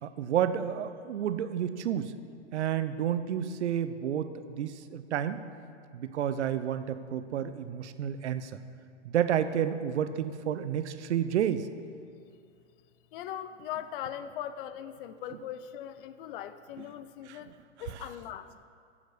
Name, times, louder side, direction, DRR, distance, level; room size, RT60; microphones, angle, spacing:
voice 1, 0.0-2.1 2.5-5.4 5.9-8.5 9.0-11.7 17.3-17.4, right 9 dB, 65° right, 11 dB, 0.8 m, -30 dB
voice 2, 13.1-18.5, left 10 dB, 45° left, 12 dB, 0.6 m, -40 dB
8.0 x 7.2 x 8.3 m, 2.3 s
hypercardioid pair, 105°, 36 cm